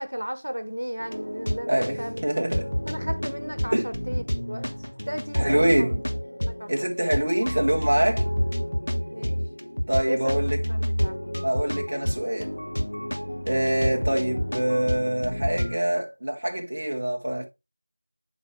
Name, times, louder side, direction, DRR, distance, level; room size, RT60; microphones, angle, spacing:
voice 1, 0.0-2.2 2.9-4.7 5.1-5.9 6.4-6.7 7.0-7.1 9.1-9.4 10.1-10.4 10.8-11.2, equal, 75° right, 1.1 m, -34 dB
sound 1, 1.0-15.8, equal, 70° left, 1.3 m, -29 dB
voice 2, 1.7-2.7 3.7-3.9 5.3-6.0 6.7-8.2 9.9-10.6 11.4-12.5 13.5-17.4, right 1 dB, 30° right, 1.0 m, -25 dB
8.1 x 4.5 x 3.2 m
figure-of-eight pair, 175°, 0 cm